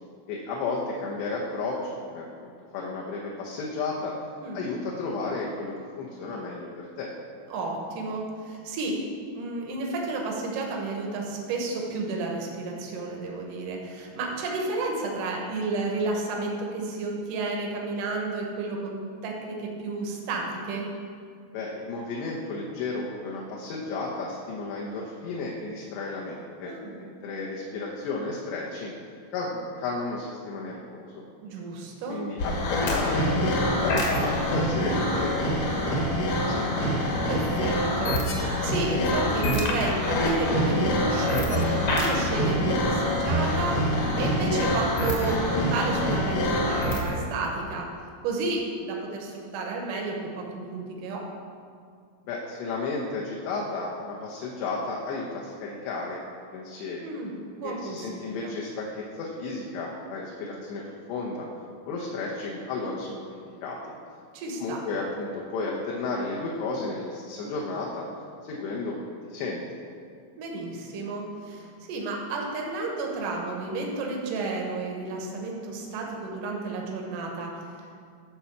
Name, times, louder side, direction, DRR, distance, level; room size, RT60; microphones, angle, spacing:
voice 1, 0.3-4.2 4.5-7.1 21.5-28.9 29.3-31.2 32.1-37.0 52.3-56.2 56.5-57.1 57.6-61.5 61.8-63.9 64.6-68.1 68.4-69.8, left 3 dB, 75° left, -3 dB, 2.9 m, -33 dB
voice 2, 7.5-9.0 9.3-20.9 26.6-27.0 31.4-32.3 37.3-47.9 48.2-51.3 57.0-57.3 57.6-58.6 64.3-64.8 70.4-77.6, right 3 dB, 75° right, 0 dB, 1.9 m, -32 dB
sound 1, 32.4-47.2, left 1 dB, 60° left, 2.4 m, -25 dB
12.5 x 4.5 x 7.1 m, 2.3 s
omnidirectional pair, 5.5 m